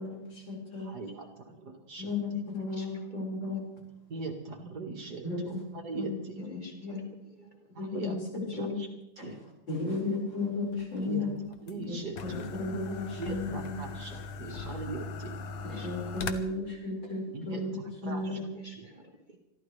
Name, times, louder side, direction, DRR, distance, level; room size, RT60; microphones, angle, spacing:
voice 1, 0.0-0.9 2.0-3.6 5.2-5.6 6.0-7.0 7.8-8.8 9.2-9.3 9.7-11.4 11.9-12.0 12.2-13.9 15.6-18.5, left 3 dB, 65° left, -3 dB, 5.9 m, -34 dB
voice 2, 0.8-2.1 4.1-6.3 7.8-8.1 8.5-8.9 9.2-9.4 11.0-11.3 11.6-12.4 13.2-15.4 17.3-17.6 18.0-18.4 18.8-18.9, right 3 dB, 55° right, 2 dB, 2.4 m, -40 dB
voice 3, 2.7-3.2 6.4-7.6 8.5-8.6 14.4-14.7 15.7-15.9 18.5-19.4, equal, 25° right, 2 dB, 1.5 m, -52 dB
sound 1, 10.7-16.3, left 5 dB, 85° left, 1.8 m, -40 dB
26.5 x 13.0 x 3.3 m, 0.89 s
omnidirectional pair, 2.2 m